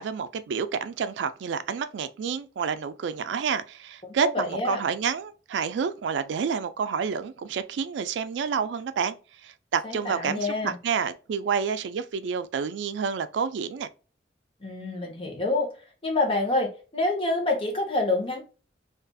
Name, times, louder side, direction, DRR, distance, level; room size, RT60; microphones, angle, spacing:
voice 1, 0.0-9.1 9.4-13.9, right 6 dB, 85° right, 0.3 m, -29 dB
voice 2, 4.0-4.8 9.8-10.8 14.6-15.7 16.0-18.4, left 2 dB, 30° left, 0.8 m, -27 dB
2.6 x 2.4 x 2.2 m
head